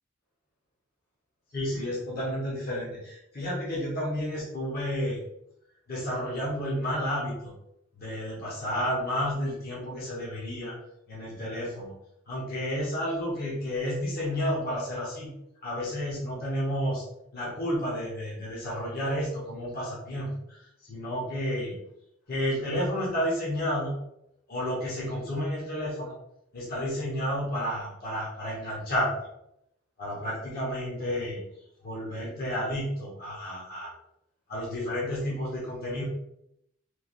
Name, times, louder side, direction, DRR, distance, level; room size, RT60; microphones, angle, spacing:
voice 1, 1.5-5.2 5.9-7.5 7.9-10.7 11.1-11.9 12.3-15.3 15.6-17.0 17.3-21.7 22.3-23.9 24.5-26.1 26.5-29.1 30.0-31.4 31.8-33.9 34.5-36.0, equal, 50° left, -6 dB, 0.9 m, -31 dB
3.1 x 2.4 x 2.5 m, 0.80 s
head